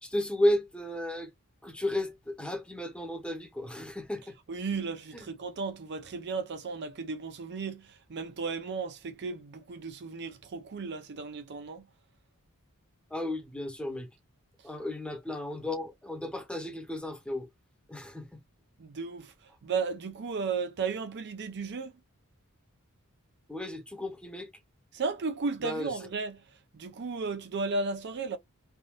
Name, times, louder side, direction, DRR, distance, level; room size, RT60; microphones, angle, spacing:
voice 1, 0.0-1.3 1.6-4.3 5.1-5.2 13.1-14.1 14.6-17.5 17.9-18.4 23.5-24.5 25.6-25.9, left 1 dB, 5° left, 0.9 m, -33 dB
voice 2, 4.5-11.9 18.8-21.9 24.9-26.4 26.7-28.4, right 4 dB, 50° right, 0.5 m, -34 dB
3.5 x 2.5 x 2.4 m
head